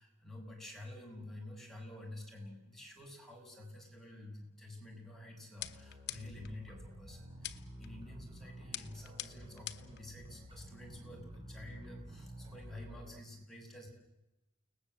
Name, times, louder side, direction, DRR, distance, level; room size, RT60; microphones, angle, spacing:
voice 1, 0.0-13.9, left 1 dB, ahead, -1 dB, 6.7 m, -50 dB
sound 1, 5.6-6.5 7.4-7.9 8.7-10.0, left 12 dB, 50° left, 1.2 m, -44 dB
sound 2, 5.6-13.2, equal, 25° right, 2.5 m, -51 dB
30.0 x 20.0 x 7.9 m, 0.94 s
head